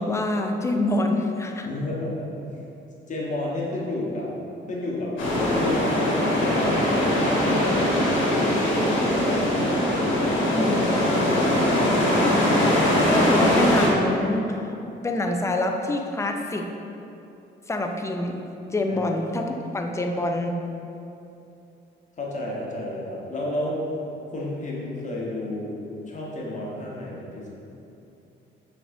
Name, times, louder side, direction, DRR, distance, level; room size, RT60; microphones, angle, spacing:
voice 1, 0.0-1.7 10.5-11.0 13.1-14.8 15.0-16.7 17.7-18.5 18.7-20.6, left 2 dB, 15° left, 4 dB, 0.4 m, -26 dB
voice 2, 1.6-2.1 3.1-4.3 4.7-5.2 5.5-9.6 10.6-10.9 11.4-12.5 18.9-19.0 22.2-23.8 24.3-27.5, left 1 dB, 40° left, -4 dB, 1.1 m, -31 dB
sound 1, 5.2-13.9, left 1 dB, 80° left, 1.2 m, -21 dB
5.9 x 3.5 x 2.6 m, 2.8 s
cardioid pair, 90°, 20 cm